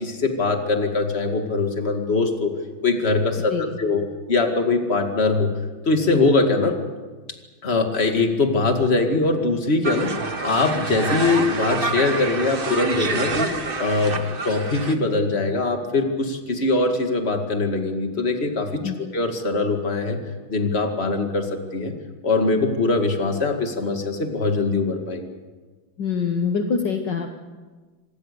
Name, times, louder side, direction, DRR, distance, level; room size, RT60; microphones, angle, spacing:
voice 1, 0.0-2.5 2.8-4.0 4.3-5.6 5.9-6.8 7.6-18.8 19.1-20.2 20.5-21.9 22.2-25.3, left 3 dB, 30° left, 4 dB, 2.3 m, -22 dB
sound 1, 9.8-14.9, right 3 dB, 30° right, 1.4 m, -27 dB
voice 2, 26.0-27.3, left 5 dB, 60° left, 5 dB, 1.8 m, -24 dB
26.5 x 19.5 x 6.9 m, 1.3 s
omnidirectional pair, 2.3 m